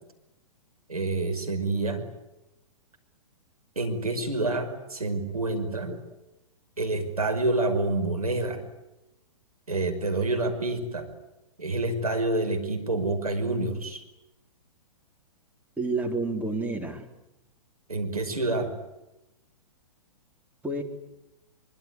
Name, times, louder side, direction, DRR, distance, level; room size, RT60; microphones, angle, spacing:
voice 1, 0.9-2.1 3.8-5.9 6.8-8.6 9.7-11.1 11.6-14.0 17.9-18.7, right 2 dB, 85° right, 5 dB, 5.6 m, -28 dB
voice 2, 15.8-17.1 20.6-20.8, right 3 dB, 10° right, 2 dB, 4.0 m, -29 dB
24.5 x 24.0 x 9.8 m, 0.92 s
figure-of-eight pair, 115°, 18 cm